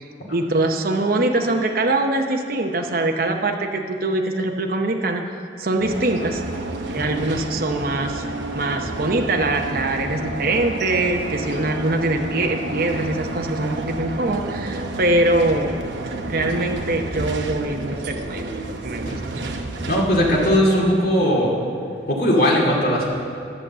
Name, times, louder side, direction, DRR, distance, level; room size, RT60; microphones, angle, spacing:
voice 1, 0.0-5.2 5.6-6.5 6.9-8.3 8.5-15.8 16.3-19.5, right 2 dB, 55° right, 3 dB, 0.8 m, -23 dB
sound 1, 5.8-20.6, right 2 dB, 85° right, 0.9 m, -30 dB
voice 2, 19.9-21.5 22.1-23.1, equal, 55° left, -4 dB, 2.2 m, -18 dB
11.0 x 6.9 x 7.4 m, 2.5 s
head